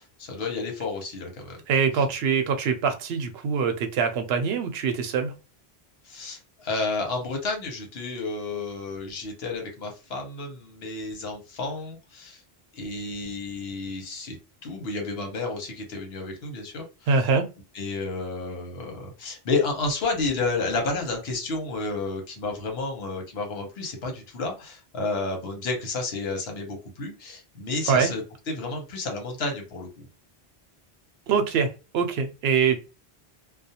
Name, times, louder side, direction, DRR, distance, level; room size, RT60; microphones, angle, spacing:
voice 1, 0.0-1.6 2.0-2.1 6.0-12.4 12.7-14.4 14.6-16.9 17.7-28.2 28.5-30.0, left 3 dB, 75° left, 2 dB, 1.1 m, -31 dB
voice 2, 1.7-5.3 17.1-17.5 27.9-28.1 31.3-31.7 31.9-32.8, right 5 dB, 80° right, 7 dB, 0.8 m, -23 dB
2.4 x 2.1 x 2.7 m, 0.30 s
omnidirectional pair, 1.0 m